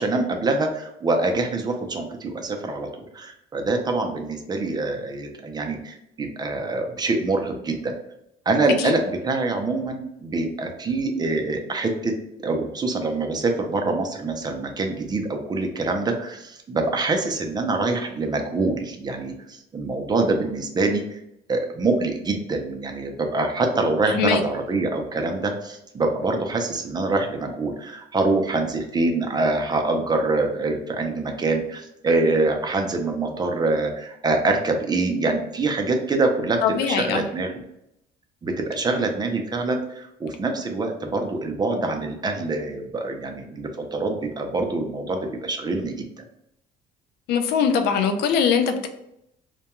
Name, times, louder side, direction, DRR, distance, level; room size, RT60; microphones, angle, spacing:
voice 1, 0.0-8.0 8.5-12.1 12.4-21.2 21.5-37.6 38.4-46.2, right 3 dB, 25° right, 3 dB, 0.4 m, -25 dB
voice 2, 24.1-24.4 36.6-37.2 47.3-48.9, left 7 dB, 75° left, 6 dB, 0.4 m, -21 dB
2.2 x 2.2 x 2.9 m, 0.80 s
cardioid pair, 110°, 17 cm